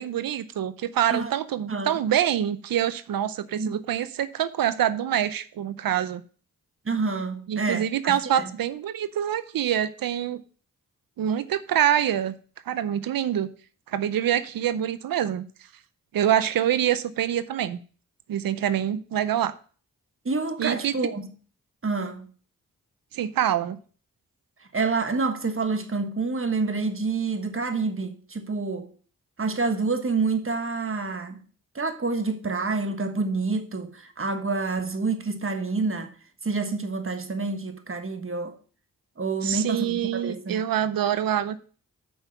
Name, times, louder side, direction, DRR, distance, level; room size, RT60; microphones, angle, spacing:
voice 1, 0.0-6.2 7.5-10.4 11.2-12.3 12.7-13.5 13.9-15.5 16.1-17.8 18.3-19.5 20.6-20.9 23.1-23.8 39.4-41.6, right 10 dB, 90° right, 0.6 m, -25 dB
voice 2, 6.8-8.5 20.2-21.3 21.8-22.3 24.7-28.9 29.4-31.4 31.7-36.1 36.4-38.5 39.2-40.6, right 4 dB, 40° right, 1.4 m, -28 dB
6.4 x 5.3 x 6.9 m
cardioid pair, 40°, 34 cm